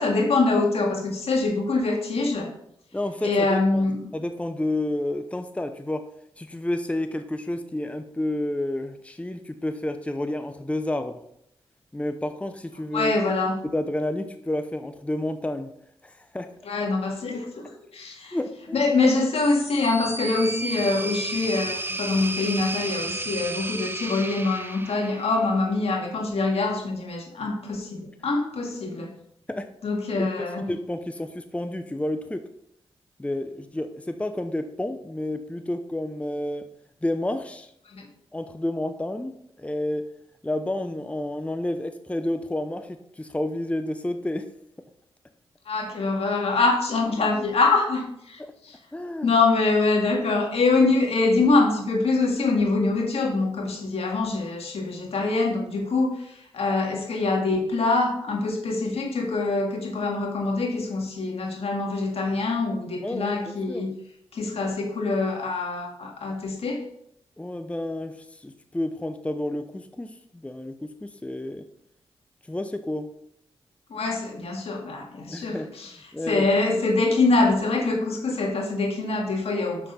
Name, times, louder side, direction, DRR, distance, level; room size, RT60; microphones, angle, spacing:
voice 1, 0.0-2.5 3.2-4.1 12.9-13.6 16.6-18.4 18.7-29.1 29.8-30.7 37.9-38.1 45.7-48.8 49.2-63.9 64.3-66.8 73.9-75.9 76.3-79.9, left 3 dB, 70° left, 1 dB, 2.0 m, -24 dB
voice 2, 2.9-3.9 4.1-6.1 6.4-11.2 11.9-13.2 13.6-15.7 16.0-16.5 18.3-18.9 29.5-29.7 30.2-32.5 33.2-36.7 37.0-37.7 38.3-40.0 40.4-44.5 48.4-48.5 48.9-49.3 63.0-63.4 63.7-64.0 67.4-71.6 72.5-73.1 75.3-75.7 76.1-76.5, left 1 dB, 10° left, 8 dB, 0.7 m, -30 dB
sound 1, 19.4-25.6, right 2 dB, 20° right, 0.9 m, -33 dB
6.6 x 6.3 x 5.5 m, 0.73 s
cardioid pair, 50°, 11 cm